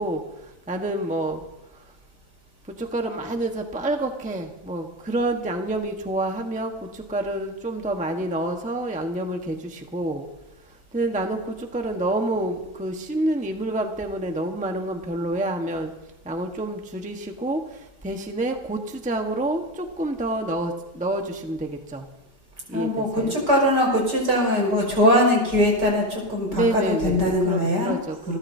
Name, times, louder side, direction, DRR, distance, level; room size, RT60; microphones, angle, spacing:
voice 1, 0.0-1.4 2.8-10.3 10.9-15.9 16.2-22.1 22.7-23.3 26.5-28.4, right 1 dB, 5° right, 3 dB, 1.0 m, -28 dB
voice 2, 22.7-27.9 28.3-28.4, left 1 dB, 70° right, -1 dB, 6.0 m, -21 dB
27.5 x 13.5 x 2.8 m, 0.98 s
omnidirectional pair, 1.9 m